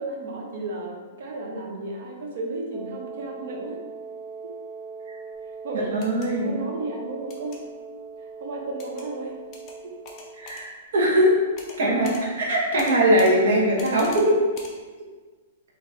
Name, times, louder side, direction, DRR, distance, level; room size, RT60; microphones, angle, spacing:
voice 1, 0.0-3.8 5.6-6.1 6.4-7.6 8.4-9.4 9.8-9.9 11.8-11.9, right 2 dB, 50° right, -1 dB, 0.9 m, -33 dB
Wind instrument woodwind instrument, 2.7-10.6, right 5 dB, 30° right, 0.5 m, -40 dB
voice 2, 5.9-6.5 10.4-11.3 11.8-14.3, right 1 dB, 75° right, -3 dB, 1.2 m, -21 dB
sound 1, 6.0-6.3 7.3-7.6 8.8-9.1 9.5-9.8 10.1-10.7 11.6-11.8 12.0-12.2 12.8-13.3 13.8-14.3 14.6-14.7, left 3 dB, 25° left, 0.6 m, -41 dB
4.3 x 2.8 x 3.6 m, 1.4 s
hypercardioid pair, 170°, 0 cm